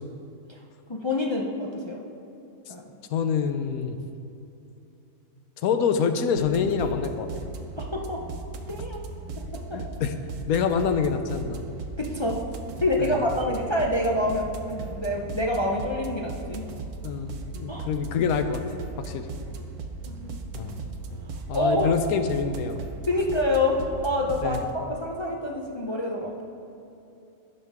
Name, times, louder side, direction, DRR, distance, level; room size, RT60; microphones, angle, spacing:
voice 1, 0.9-2.0 2.7-3.0 7.8-8.2 8.7-9.0 9.7-9.8 12.0-12.4 12.8-16.7 17.7-17.9 20.1-20.4 21.5-21.9 23.1-26.4, left 1 dB, 40° left, -1 dB, 0.4 m, -27 dB
voice 2, 3.1-4.0 5.6-7.3 9.4-10.1 10.5-11.6 13.0-13.2 17.0-18.6 19.0-19.3 20.5-20.8 21.1-21.2 21.5-22.8 24.4-24.6, left 6 dB, 75° left, 8 dB, 1.1 m, -26 dB
sound 1, 6.4-24.7, right 3 dB, 90° right, 1.3 m, -37 dB
16.0 x 5.6 x 3.6 m, 2.8 s
omnidirectional pair, 1.6 m